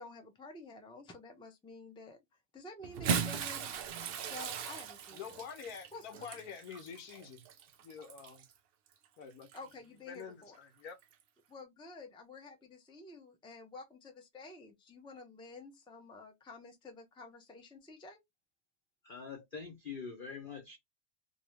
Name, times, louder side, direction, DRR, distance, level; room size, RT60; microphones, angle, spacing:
voice 1, 0.0-2.2 2.5-3.8 4.3-5.3 5.9-6.3 9.5-10.6 11.5-18.2, left 2 dB, 10° left, 0.3 m, -50 dB
Bathtub (filling or washing) / Splash splatter, 2.8-8.5 9.4-9.6 11.0-11.1, right 6 dB, 80° right, 0.5 m, -38 dB
voice 2, 5.1-7.4 7.8-8.4 9.2-9.5 10.1-11.0, left 7 dB, 80° left, 1.2 m, -47 dB
voice 3, 19.0-20.8, left 5 dB, 50° left, 0.7 m, -44 dB
2.7 x 2.6 x 3.1 m
omnidirectional pair, 1.6 m